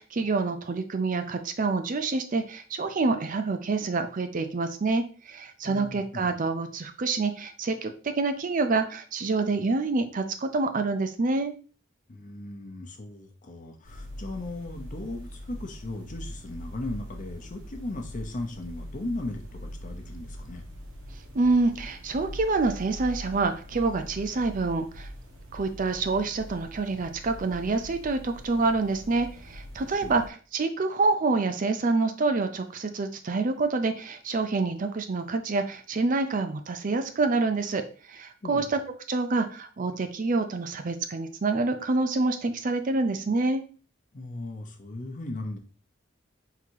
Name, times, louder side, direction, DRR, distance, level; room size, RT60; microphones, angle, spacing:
voice 1, 0.0-11.5 21.3-25.1 25.5-38.8 39.1-43.6, right 3 dB, 45° right, 8 dB, 0.5 m, -27 dB
voice 2, 5.6-6.3 12.1-20.6 29.8-30.2 38.4-38.7 44.1-45.6, left 2 dB, 40° left, 3 dB, 0.8 m, -37 dB
sound 1, 13.8-30.3, equal, 85° right, 1.2 m, -42 dB
3.8 x 2.8 x 4.6 m, 0.38 s
head